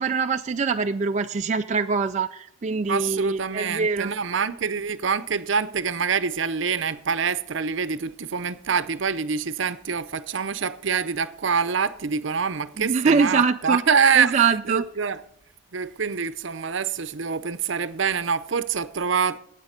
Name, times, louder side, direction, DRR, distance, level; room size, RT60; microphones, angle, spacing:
voice 1, 0.0-4.1 12.8-13.8 14.2-14.9, right 5 dB, 35° right, 0.3 m, -23 dB
voice 2, 2.9-15.2 15.7-19.4, right 6 dB, 65° right, 0.7 m, -25 dB
12.5 x 9.0 x 5.1 m
head